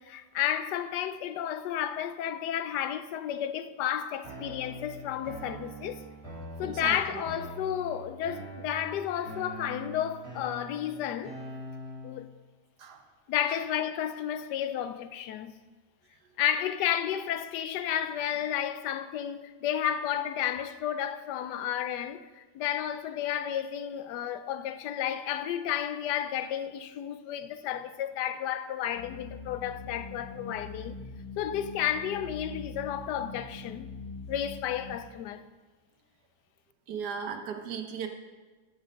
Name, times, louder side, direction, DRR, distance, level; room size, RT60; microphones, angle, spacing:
voice 1, 0.0-6.0 6.6-11.3 12.0-12.3 13.3-15.5 16.4-31.0 31.4-33.9 34.3-35.4, left 10 dB, 80° left, 1.2 m, -32 dB
sound 1, 4.2-12.2, equal, 20° right, 2.9 m, -43 dB
voice 2, 6.6-7.0 12.8-13.0 13.5-13.6 36.9-38.1, right 7 dB, 70° right, 1.5 m, -36 dB
sound 2, 29.0-34.9, left 3 dB, 60° left, 1.4 m, -43 dB
14.0 x 5.5 x 5.2 m
omnidirectional pair, 1.8 m